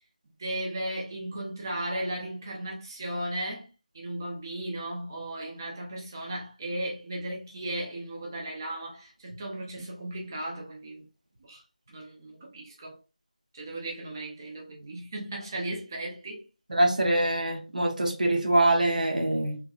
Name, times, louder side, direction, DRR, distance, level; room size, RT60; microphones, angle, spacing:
voice 1, 0.4-3.7 3.9-11.0 11.4-11.6 11.9-13.0 13.5-16.4, right 1 dB, 30° right, 0.6 m, -36 dB
voice 2, 16.7-19.6, right 1 dB, 80° right, 1.4 m, -24 dB
3.7 x 2.9 x 2.3 m
figure-of-eight pair, 170°, 4 cm